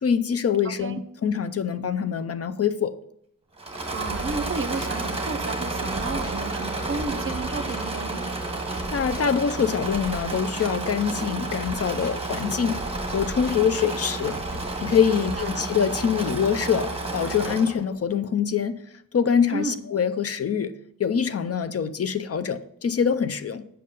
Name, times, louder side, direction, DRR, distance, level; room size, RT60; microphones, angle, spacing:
voice 1, 0.0-3.0 8.9-12.8 13.1-14.4 14.8-18.8 19.1-20.7 21.0-23.6, left 7 dB, 45° left, 12 dB, 0.5 m, -24 dB
Engine / Mechanisms, 3.6-17.8, right 2 dB, 15° right, 1.2 m, -31 dB
voice 2, 3.9-8.3 15.2-15.6 19.5-19.8, right 4 dB, 40° right, 11 dB, 0.6 m, -32 dB
sound 1, 4.0-5.0 5.8-6.4 6.9-7.9 8.7-9.2 9.8-10.8 11.6-12.2 12.7-13.7 14.3-15.5, left 1 dB, 30° left, 1.0 m, -39 dB
sound 2, 4.8-9.9, right 1 dB, 5° left, 1.7 m, -46 dB
7.6 x 5.5 x 5.3 m, 0.73 s
wide cardioid pair, 175°, 33 cm